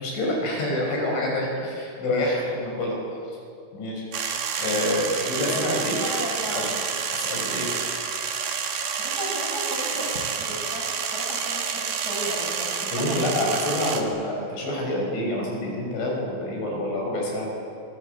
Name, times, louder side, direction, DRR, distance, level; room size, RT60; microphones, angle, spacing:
voice 1, 0.0-3.4 3.7-4.0 4.6-6.0 6.5-6.7 7.1-7.7 12.9-17.5, left 1 dB, 65° left, -1 dB, 8.4 m, -27 dB
sound 1, 4.1-14.0, right 6 dB, 55° right, 3.0 m, -29 dB
voice 2, 5.4-6.8 9.0-10.9 11.1-13.3, equal, 20° right, -2 dB, 5.5 m, -34 dB
25.5 x 23.5 x 8.4 m, 2.6 s
omnidirectional pair, 5.7 m